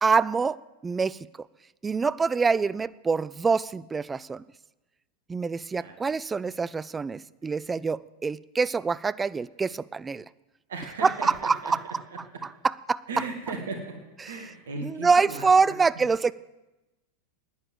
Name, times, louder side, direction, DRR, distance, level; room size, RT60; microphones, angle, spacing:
voice 1, 0.0-1.5 1.8-4.4 5.3-10.2 11.0-11.8 12.4-13.0 14.2-14.3 14.8-16.3, right 4 dB, 15° right, 18 dB, 0.3 m, -25 dB
voice 2, 10.7-11.7 13.1-13.8 14.2-15.8, right 3 dB, 65° right, 4 dB, 2.1 m, -36 dB
10.5 x 9.8 x 7.9 m, 1.0 s
figure-of-eight pair, 90°, 0 cm